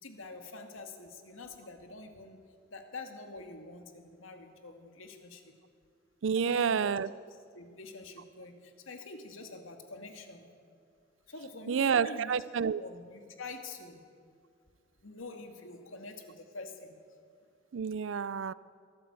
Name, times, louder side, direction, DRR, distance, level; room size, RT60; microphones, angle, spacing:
voice 1, 0.0-2.4 2.7-5.5 6.3-6.9 7.3-10.5 11.3-12.4 12.8-14.0 15.0-17.0, left 3 dB, 85° left, 2.3 m, -46 dB
voice 2, 6.2-7.1 11.7-12.8 17.7-18.5, right 6 dB, 70° right, 0.4 m, -29 dB
22.5 x 15.0 x 8.2 m
head